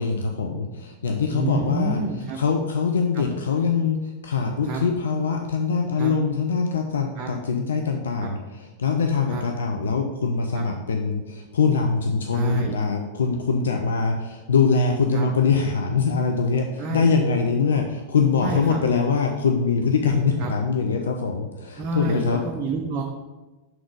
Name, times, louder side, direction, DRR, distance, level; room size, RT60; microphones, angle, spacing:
voice 1, 0.0-2.0 2.4-8.4 8.8-22.4, left 5 dB, 65° left, 3 dB, 0.5 m, -23 dB
voice 2, 1.3-2.4 3.1-3.2 4.6-4.8 6.0-6.1 7.2-7.3 8.2-8.3 9.3-9.4 10.5-10.6 12.3-12.8 15.1-15.3 16.8-17.1 18.4-18.8 20.4-20.5 21.8-23.0, right 3 dB, 30° right, 0 dB, 0.7 m, -29 dB
6.0 x 3.9 x 4.8 m, 1.1 s
figure-of-eight pair, 90°, 0 cm